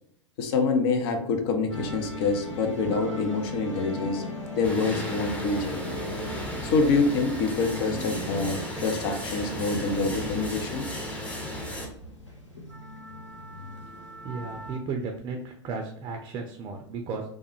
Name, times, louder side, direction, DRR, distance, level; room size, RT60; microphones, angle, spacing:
voice 1, 0.4-4.2 4.5-6.0 6.6-10.8 12.6-12.7, left 4 dB, 55° left, 5 dB, 0.6 m, -26 dB
sound 1, 1.7-14.8, left 2 dB, 90° left, 0.8 m, -39 dB
sound 2, 4.6-11.9, equal, 10° left, 0.6 m, -35 dB
voice 2, 14.2-17.2, right 4 dB, 30° right, 3 dB, 0.4 m, -34 dB
3.3 x 2.1 x 3.0 m, 0.69 s
figure-of-eight pair, 95°, 15 cm